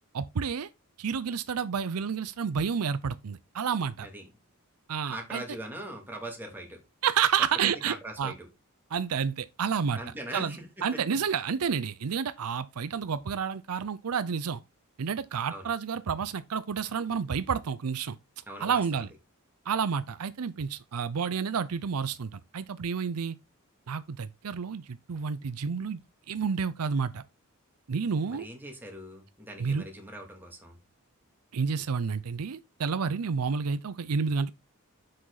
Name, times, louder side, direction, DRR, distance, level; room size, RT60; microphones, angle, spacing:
voice 1, 0.1-0.7 1.0-4.1 4.9-5.4 7.0-8.3 8.9-10.0 10.3-14.6 15.0-18.2 18.6-19.1 19.7-23.3 23.9-26.0 26.3-27.2 27.9-28.5 29.6-29.8 31.5-34.5, right 6 dB, 80° right, 0.5 m, -30 dB
voice 2, 5.1-6.8 7.8-8.5 9.9-11.0 15.5-15.7 18.5-19.1 28.2-30.8, right 1 dB, 10° right, 2.7 m, -41 dB
7.7 x 6.0 x 4.0 m
head